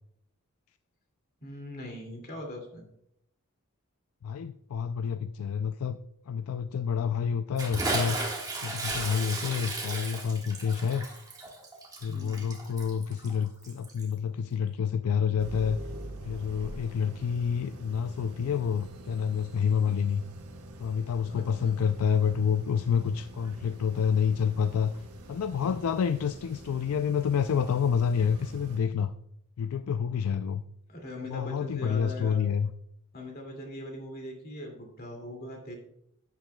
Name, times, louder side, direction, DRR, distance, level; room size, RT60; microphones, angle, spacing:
voice 1, 1.4-2.8 12.1-12.5 21.3-21.8 30.9-32.4 33.1-35.7, left 1 dB, 45° left, 1 dB, 2.3 m, -41 dB
voice 2, 4.2-6.0 6.3-8.2 8.6-11.1 12.0-15.8 16.2-20.2 20.8-25.0 25.3-29.1 29.6-30.6 31.3-32.7, left 7 dB, 75° left, 10 dB, 0.4 m, -28 dB
Bathtub (filling or washing) / Splash splatter, 7.6-14.1, right 2 dB, 15° right, 1.5 m, -35 dB
sound 1, 15.4-28.8, right 1 dB, 85° right, 1.2 m, -46 dB
11.5 x 9.2 x 2.2 m, 0.74 s
head